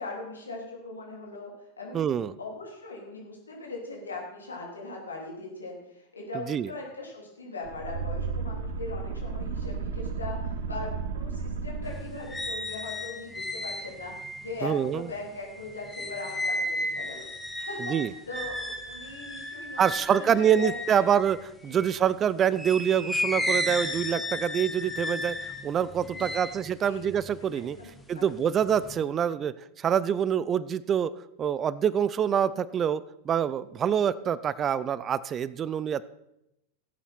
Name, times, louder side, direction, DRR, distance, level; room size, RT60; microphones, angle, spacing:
voice 1, 0.0-1.5 1.8-2.0 2.4-21.1 21.7-21.8 26.1-26.5 26.8-27.0 27.5-28.5, left 3 dB, 75° left, -1 dB, 3.6 m, -40 dB
voice 2, 1.9-2.3 6.5-6.7 14.6-15.1 17.8-18.1 19.8-21.4 21.6-25.4 25.6-27.8 28.1-31.1 31.4-36.0, right 8 dB, 25° right, 18 dB, 0.4 m, -26 dB
sound 1, 7.6-12.5, right 5 dB, 55° right, 1.0 m, -33 dB
sound 2, 11.8-22.0 22.5-28.0 28.4-29.0, left 1 dB, 5° left, 1.3 m, -34 dB
16.5 x 8.9 x 4.4 m, 0.85 s
figure-of-eight pair, 90°, 0 cm